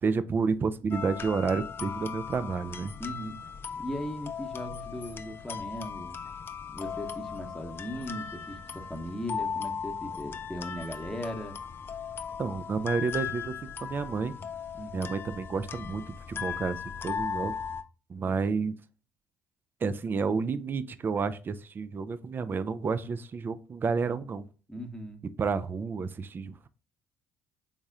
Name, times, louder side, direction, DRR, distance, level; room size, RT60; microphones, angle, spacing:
voice 1, 0.0-2.9 12.4-13.5 13.8-14.3 14.9-17.5 18.1-18.7 19.8-24.4 25.4-26.7, right 5 dB, 35° right, 13 dB, 0.4 m, -30 dB
sound 1, 0.9-17.8, left 7 dB, 35° left, 0.5 m, -38 dB
voice 2, 3.0-6.2 6.7-11.6 14.7-15.1 24.7-25.2, equal, 5° left, 3 dB, 1.0 m, -38 dB
4.0 x 3.7 x 3.5 m, 0.36 s
hypercardioid pair, 50°, 6 cm